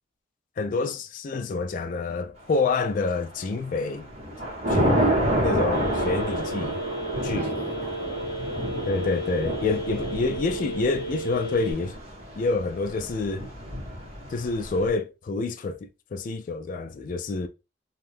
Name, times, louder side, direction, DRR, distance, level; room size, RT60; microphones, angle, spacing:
voice 1, 0.6-4.1 4.7-5.2 5.4-6.8 7.2-7.5 8.9-12.0 12.4-13.5 14.3-17.5, left 3 dB, 45° left, 0.3 m, -27 dB
Thunder / Rain, 2.8-3.3 3.8-14.9, right 1 dB, 35° right, 1.3 m, -29 dB
Telephone, 5.7-11.7, right 1 dB, 25° left, 0.7 m, -34 dB
voice 2, 7.3-8.2, right 3 dB, 55° right, 0.8 m, -42 dB
2.6 x 2.3 x 3.4 m
head